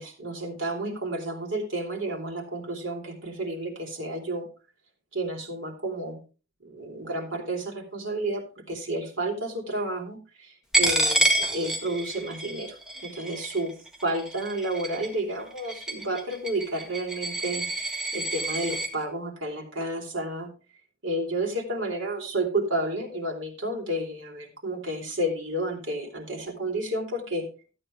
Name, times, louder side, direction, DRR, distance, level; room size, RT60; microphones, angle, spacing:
voice 1, 0.0-4.5 5.1-6.2 6.6-13.7 14.0-20.5 21.0-27.5, right 1 dB, 65° right, 1 dB, 3.8 m, -31 dB
Coin (dropping), 10.7-18.9, right 2 dB, 5° right, 1.6 m, -28 dB
14.0 x 8.7 x 3.4 m, 0.34 s
head